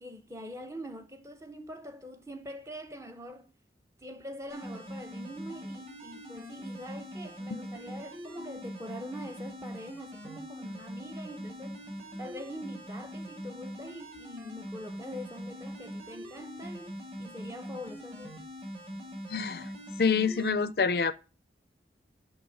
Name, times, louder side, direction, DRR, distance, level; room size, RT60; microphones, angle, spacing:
voice 1, 0.0-3.5 4.0-11.8 12.2-18.4, equal, 15° right, 0.8 m, -44 dB
sound 1, 4.5-20.5, equal, 35° right, 2.0 m, -42 dB
voice 2, 19.3-19.7 20.0-21.1, left 5 dB, 60° left, 0.5 m, -26 dB
6.3 x 6.3 x 4.6 m
head